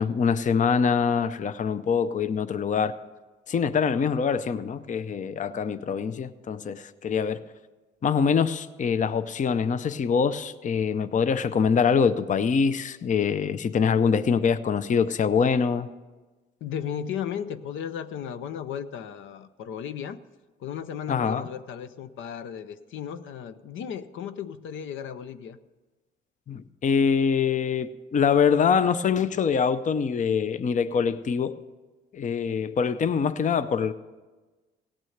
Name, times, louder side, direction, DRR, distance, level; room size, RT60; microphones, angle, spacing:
voice 1, 0.0-3.0 3.5-7.4 8.0-15.9 21.1-21.5 26.5-31.6 32.1-33.9, left 6 dB, 40° left, 13 dB, 0.6 m, -24 dB
voice 2, 16.6-20.2 20.6-25.6, left 8 dB, 75° left, 11 dB, 0.6 m, -35 dB
17.0 x 6.2 x 7.9 m, 1.2 s
cardioid pair, 90°, 20 cm